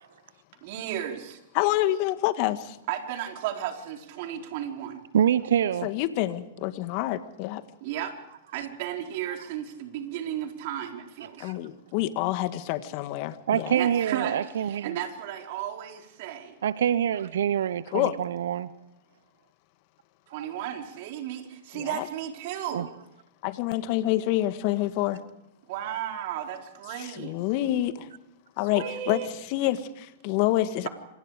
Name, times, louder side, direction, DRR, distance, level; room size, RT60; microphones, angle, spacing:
voice 1, 0.6-1.4 2.9-5.0 7.8-8.1 8.5-11.5 13.7-16.6 20.3-22.9 25.7-27.3 27.8-27.9 28.7-29.3, right 11 dB, 55° right, 3 dB, 4.4 m, -34 dB
voice 2, 1.5-2.8 5.8-7.6 11.4-13.8 17.9-18.2 21.7-22.1 23.4-25.2 26.9-28.1 28.6-29.2 29.5-30.9, left 15 dB, 50° left, 11 dB, 1.8 m, -27 dB
voice 3, 5.1-5.9 11.4-11.5 13.5-15.0 16.6-18.7 22.7-22.9, right 9 dB, 70° right, 17 dB, 0.9 m, -25 dB
27.0 x 27.0 x 5.1 m, 0.87 s
hypercardioid pair, 110°, 0 cm